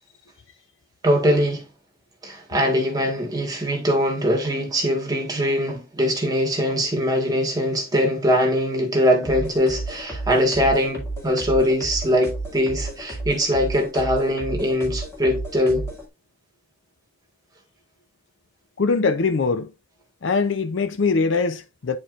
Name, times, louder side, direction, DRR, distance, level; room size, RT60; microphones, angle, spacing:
voice 1, 1.0-1.6 2.2-15.9, equal, 20° right, 1.5 m, -22 dB
sound 1, 9.2-16.0, right 2 dB, 15° left, 2.0 m, -32 dB
voice 2, 18.8-19.7 20.2-22.0, left 4 dB, 60° left, 0.5 m, -22 dB
9.4 x 4.3 x 2.5 m
head